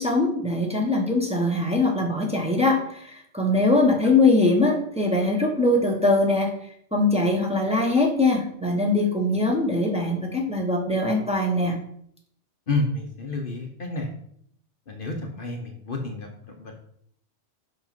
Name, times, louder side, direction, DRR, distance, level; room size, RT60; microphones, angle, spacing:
voice 1, 0.0-6.5 6.9-11.8, left 2 dB, 5° right, 0 dB, 1.5 m, -22 dB
voice 2, 12.7-14.1 14.9-16.7, left 2 dB, 50° left, 2 dB, 1.1 m, -30 dB
6.1 x 5.9 x 5.3 m, 0.68 s
omnidirectional pair, 1.2 m